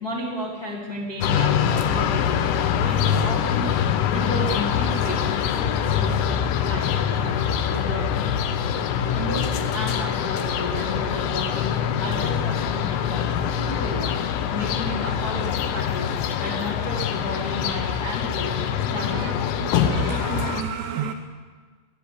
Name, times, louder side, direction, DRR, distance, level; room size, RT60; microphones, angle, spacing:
voice 1, 0.0-2.4 2.8-3.7 4.1-8.1 9.1-14.2 14.5-19.9, left 1 dB, 55° left, -4 dB, 1.0 m, -33 dB
sound 1, 1.2-20.6, left 8 dB, 85° left, 2.4 m, -24 dB
voice 2, 19.6-21.1, right 7 dB, 80° right, 5 dB, 2.6 m, -30 dB
16.0 x 11.0 x 8.4 m, 1.5 s
omnidirectional pair, 5.8 m